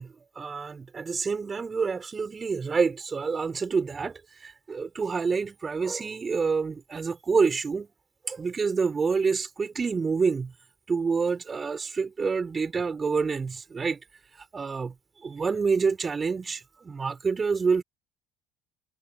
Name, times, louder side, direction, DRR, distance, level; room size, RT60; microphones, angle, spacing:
voice 1, 0.0-7.9 8.2-10.5 10.9-14.0 14.5-14.9 15.2-17.8, right 5 dB, 25° right, 5.9 m, -27 dB
figure-of-eight pair, 60°, 0 cm